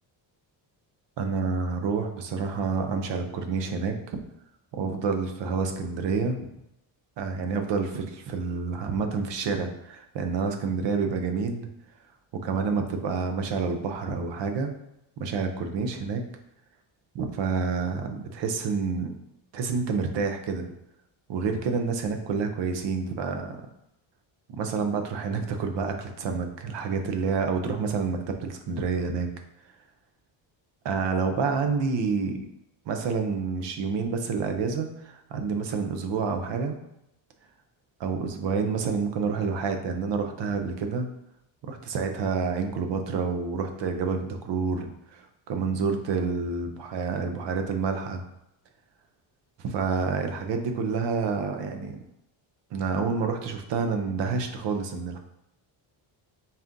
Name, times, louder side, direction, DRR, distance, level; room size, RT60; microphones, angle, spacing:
voice 1, 1.2-4.2 4.7-6.5 7.2-11.7 12.4-14.7 15.2-16.2 17.1-19.1 19.5-20.7 21.3-23.5 24.5-29.3 30.8-32.4 32.9-36.8 38.0-41.1 41.7-48.2 49.6-52.0 52.7-55.2, right 5 dB, 65° right, 6 dB, 0.7 m, -28 dB
4.2 x 2.5 x 3.6 m, 0.82 s
cardioid pair, 140°, 48 cm